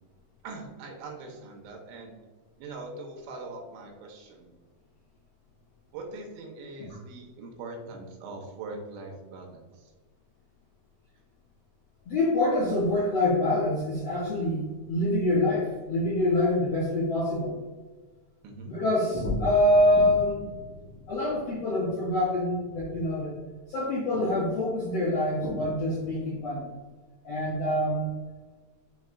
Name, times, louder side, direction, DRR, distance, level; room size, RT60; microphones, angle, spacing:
voice 1, 0.4-2.1 2.6-4.5 5.9-9.9 18.4-18.7, right 3 dB, 85° right, 1 dB, 3.0 m, -42 dB
voice 2, 12.0-17.6 18.7-20.5 21.1-23.4 23.7-26.7 27.2-28.1, left 1 dB, 80° left, -9 dB, 1.3 m, -26 dB
sound 1, 19.1-23.7 24.1-26.6, left 1 dB, 60° left, 2.4 m, -39 dB
7.4 x 3.1 x 2.3 m, 1.4 s
omnidirectional pair, 5.5 m